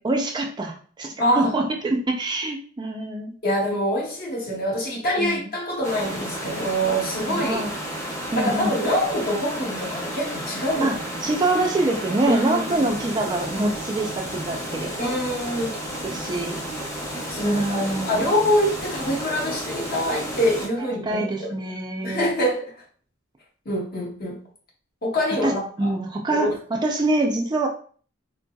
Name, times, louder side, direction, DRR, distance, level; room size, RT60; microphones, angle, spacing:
voice 1, 0.0-3.3 5.2-5.5 7.3-7.7 8.3-8.8 10.8-14.9 16.0-16.6 17.4-18.3 21.0-22.3 25.4-27.7, right 2 dB, 20° right, 1 dB, 0.3 m, -25 dB
voice 2, 1.2-1.5 3.4-7.8 8.3-11.3 12.2-12.9 15.0-15.8 17.3-21.6 22.0-22.8 23.7-24.4 25.0-25.9 26.3-26.6, equal, 50° left, -2 dB, 0.9 m, -25 dB
sound 1, 5.8-20.7, equal, 15° left, 0.8 m, -32 dB
3.6 x 2.7 x 2.2 m, 0.43 s
head